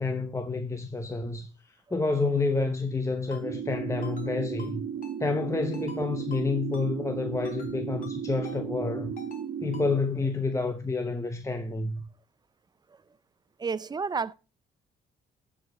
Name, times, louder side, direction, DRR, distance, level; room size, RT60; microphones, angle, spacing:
voice 1, 0.0-1.5 1.9-4.8 5.2-9.1 9.6-12.0, left 3 dB, 15° left, 0.8 m, -29 dB
Ringtone, 3.3-3.4 4.0-4.3 4.6-4.7 5.0-5.2 5.7-6.0 6.3-6.4 6.7-6.9 7.4-7.7 8.0-8.1 8.4-8.6 9.2-9.4 9.7-9.9, left 5 dB, 45° left, 3.3 m, -46 dB
sound 1, 3.4-10.0, right 8 dB, 75° right, 1.3 m, -35 dB
voice 2, 13.6-14.3, right 5 dB, 20° right, 0.4 m, -32 dB
9.4 x 4.9 x 5.5 m
cardioid pair, 90°, 20 cm